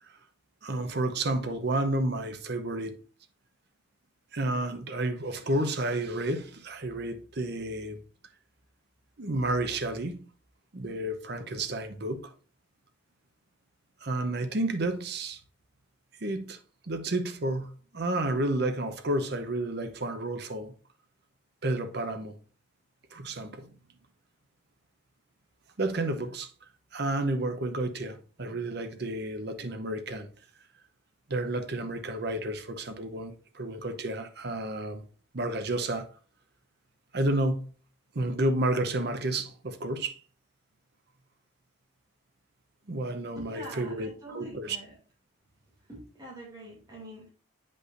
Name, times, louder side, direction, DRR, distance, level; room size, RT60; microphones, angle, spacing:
voice 1, 0.6-2.9 4.3-8.0 9.2-10.3 10.7-12.3 14.0-15.4 16.2-16.6 16.9-20.7 21.6-22.4 23.1-23.7 25.8-26.5 26.9-30.3 31.3-35.0 35.3-36.1 37.1-37.7 38.1-40.2 42.9-44.1 44.3-44.8, right 1 dB, 50° right, 0.7 m, -31 dB
voice 2, 43.4-45.0 45.8-47.3, right 1 dB, 20° right, 2.5 m, -45 dB
8.2 x 5.4 x 2.5 m
head